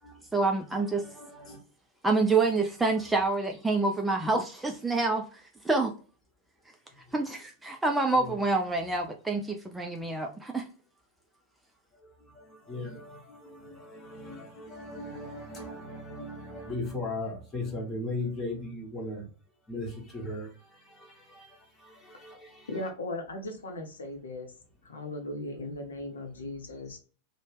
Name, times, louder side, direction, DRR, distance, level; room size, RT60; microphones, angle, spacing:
voice 1, 0.3-1.0 2.0-5.9 7.1-10.7, right 3 dB, 5° right, 0.4 m, -27 dB
voice 2, 1.0-1.6 8.2-8.3 12.0-19.3 19.7-22.7, left 2 dB, 20° left, 1.3 m, -38 dB
voice 3, 22.7-24.5 24.8-27.0, left 2 dB, 70° left, 0.5 m, -37 dB
2.7 x 2.1 x 3.2 m
figure-of-eight pair, 90°, 0 cm